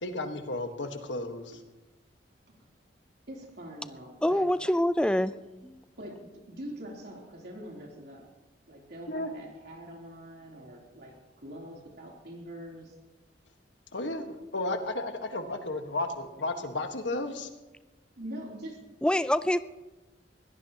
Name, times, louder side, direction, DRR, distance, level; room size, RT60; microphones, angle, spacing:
voice 1, 0.0-1.6 9.1-9.3 13.9-17.5, left 2 dB, 80° left, 6 dB, 1.5 m, -33 dB
voice 2, 3.3-4.4 6.0-8.3 8.7-12.9 18.2-18.8, equal, 60° right, -1 dB, 3.4 m, -43 dB
voice 3, 4.2-5.3 5.6-5.8 19.0-19.6, left 1 dB, 5° left, 14 dB, 0.4 m, -25 dB
22.0 x 17.0 x 3.0 m, 1.1 s
head